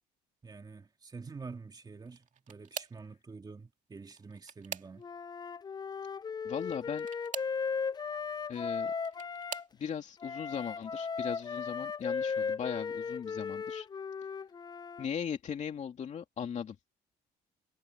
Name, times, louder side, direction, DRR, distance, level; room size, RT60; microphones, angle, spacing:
voice 1, 0.4-5.0, right 4 dB, 25° right, 2.6 m, -47 dB
sound 1, 2.1-3.1 4.0-5.3 6.9-7.6 8.7-9.8 10.5-10.9 11.3-11.4 12.8-12.9, right 8 dB, 50° right, 2.4 m, -44 dB
Wind instrument woodwind instrument, 5.0-9.6 10.2-15.1, left 5 dB, 25° left, 0.5 m, -36 dB
voice 2, 6.4-7.1 8.5-8.9 9.8-13.9 15.0-16.8, left 7 dB, 45° left, 2.6 m, -38 dB
cardioid pair, 110°, 17 cm